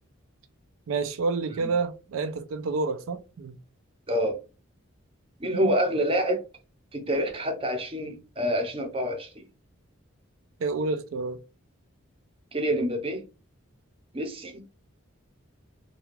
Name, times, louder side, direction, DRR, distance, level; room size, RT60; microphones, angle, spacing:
voice 1, 0.9-3.6 10.6-11.4, right 4 dB, 85° right, 0.4 m, -29 dB
voice 2, 4.1-4.4 5.4-6.4 6.9-9.4 12.5-13.2 14.1-14.6, equal, 25° right, 0.6 m, -27 dB
2.4 x 2.2 x 3.0 m
head